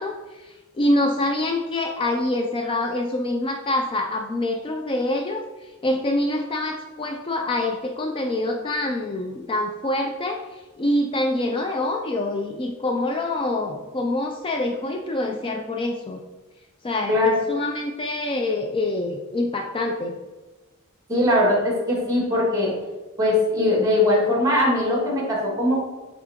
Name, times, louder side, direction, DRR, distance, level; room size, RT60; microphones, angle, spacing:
voice 1, 0.0-16.2 16.8-20.1, left 1 dB, 25° left, 3 dB, 0.4 m, -26 dB
voice 2, 21.1-22.7 23.2-25.7, left 1 dB, 15° right, -2 dB, 1.9 m, -20 dB
7.9 x 3.7 x 3.6 m, 1.2 s
head